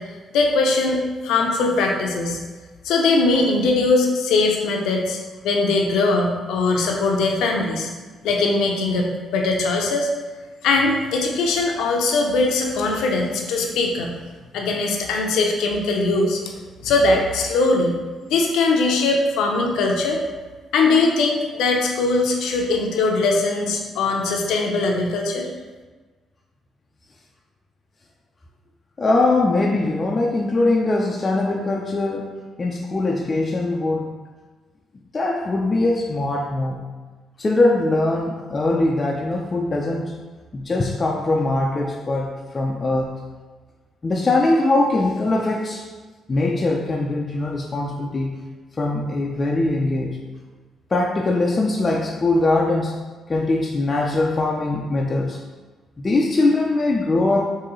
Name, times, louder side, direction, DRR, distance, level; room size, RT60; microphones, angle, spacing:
voice 1, 0.3-2.4 2.8-5.2 5.4-7.9 8.2-10.1 10.6-14.1 14.5-16.4 16.8-18.0 18.3-20.2 20.7-25.5, left 3 dB, 85° left, 1 dB, 0.5 m, -20 dB
voice 2, 29.0-34.1 35.1-36.8 37.4-40.1 40.5-43.1 44.0-45.9 46.3-48.4 48.8-50.2 50.9-53.0 53.3-55.4 56.0-57.6, left 2 dB, 30° left, -1 dB, 0.4 m, -21 dB
3.7 x 2.7 x 3.0 m, 1.3 s
cardioid pair, 90°, 0 cm